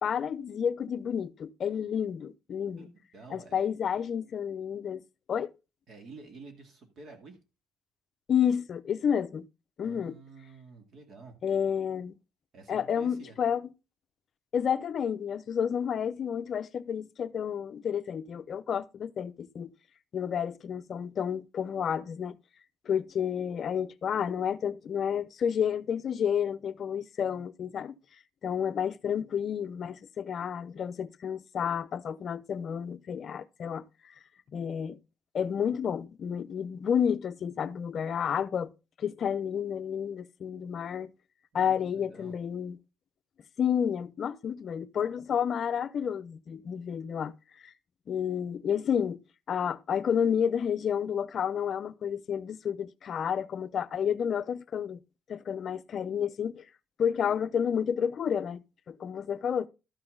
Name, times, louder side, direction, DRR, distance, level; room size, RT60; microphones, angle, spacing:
voice 1, 0.0-2.9 3.3-5.0 5.3-5.5 8.3-9.5 9.8-10.2 11.4-12.1 12.7-13.7 14.5-19.7 20.1-22.4 22.9-27.9 28.4-34.1 34.5-35.0 35.3-38.7 39.0-41.1 41.5-42.8 43.6-47.7 48.1-49.2 49.5-55.0 55.3-56.6 57.0-58.6 58.9-59.7, left 8 dB, 45° left, 0.6 m, -30 dB
voice 2, 2.8-3.7 5.9-7.4 9.8-11.3 12.5-13.4 41.5-42.4, right 4 dB, 50° right, 2.3 m, -50 dB
13.0 x 5.9 x 3.7 m
cardioid pair, 140°, 0 cm